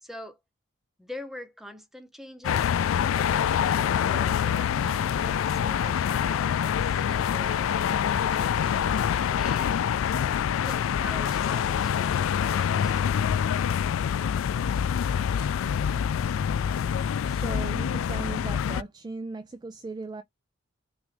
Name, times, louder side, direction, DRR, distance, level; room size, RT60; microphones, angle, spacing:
voice 1, 0.0-0.4 1.0-6.5 6.8-9.8 10.6-13.1, left 1 dB, ahead, 0.9 m, -44 dB
sound 1, 2.4-18.8, left 8 dB, 85° left, 0.3 m, -26 dB
voice 2, 17.2-20.2, right 3 dB, 20° right, 0.3 m, -38 dB
6.0 x 2.5 x 3.4 m
head